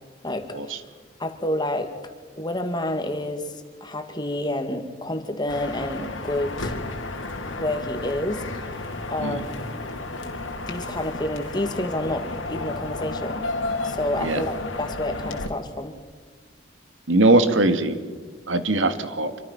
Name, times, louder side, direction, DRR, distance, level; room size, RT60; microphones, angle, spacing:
voice 1, 0.2-0.8 1.2-1.9 2.4-3.5 3.8-6.7 7.5-8.4 9.1-9.8 10.7-13.4 13.8-15.9, left 1 dB, 20° left, 6 dB, 2.4 m, -29 dB
sound 1, 5.5-15.5, left 2 dB, 85° left, 3.1 m, -32 dB
voice 2, 17.1-18.0 18.5-19.3, right 2 dB, 85° right, 9 dB, 2.1 m, -20 dB
27.0 x 24.0 x 6.0 m, 1.5 s
head